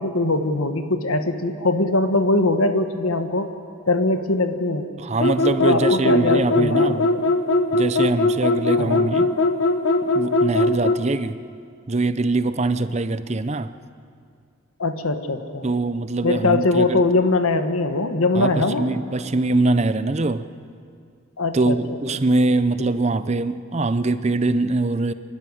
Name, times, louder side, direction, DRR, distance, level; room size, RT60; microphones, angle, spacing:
voice 1, 0.0-3.5 3.9-4.9 5.6-7.2 8.8-9.1 14.8-15.7 16.2-18.8 21.4-21.8 22.8-22.9, left 2 dB, 85° left, 1.5 m, -21 dB
voice 2, 5.0-7.1 7.7-9.3 10.0-11.4 11.9-13.7 15.6-17.0 18.3-20.5 21.5-25.1, right 2 dB, 30° right, 0.6 m, -23 dB
sound 1, 5.2-11.1, left 2 dB, 70° left, 1.3 m, -20 dB
26.5 x 12.0 x 10.0 m
head